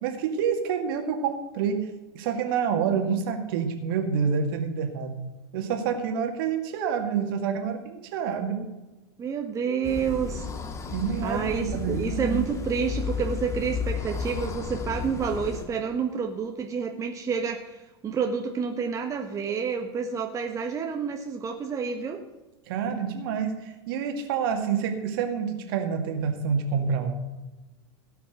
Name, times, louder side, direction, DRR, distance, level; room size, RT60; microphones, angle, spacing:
voice 1, 0.0-1.8 2.1-5.2 5.5-8.7 10.9-12.4 22.7-27.1, right 6 dB, 55° right, 4 dB, 2.1 m, -28 dB
voice 2, 9.2-10.5 11.2-17.8 18.0-22.2, right 6 dB, 25° right, 3 dB, 1.2 m, -29 dB
sound 1, 9.8-15.7, left 5 dB, 20° left, 1.8 m, -33 dB
17.5 x 5.9 x 6.4 m, 1.1 s
figure-of-eight pair, 90°, 14 cm